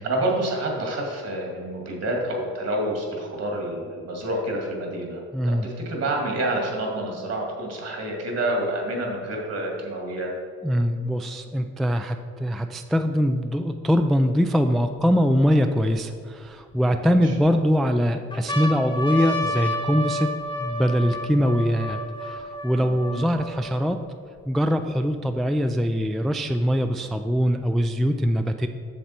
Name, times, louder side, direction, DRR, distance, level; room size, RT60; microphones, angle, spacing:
voice 1, 0.0-5.2 5.6-10.3 17.0-17.3 22.8-23.3, right 1 dB, 55° right, 0 dB, 2.2 m, -28 dB
voice 2, 5.3-5.7 10.6-20.3 20.6-24.0 24.5-28.7, equal, ahead, 7 dB, 0.3 m, -22 dB
sound 1, 14.0-14.1 14.7-16.0 16.7-17.5 18.0-18.1 18.3-23.9 24.6-24.7 24.9-25.9 26.9-27.9, left 1 dB, 15° left, 1.1 m, -31 dB
7.4 x 6.8 x 4.3 m, 2.1 s
cardioid pair, 90°, 30 cm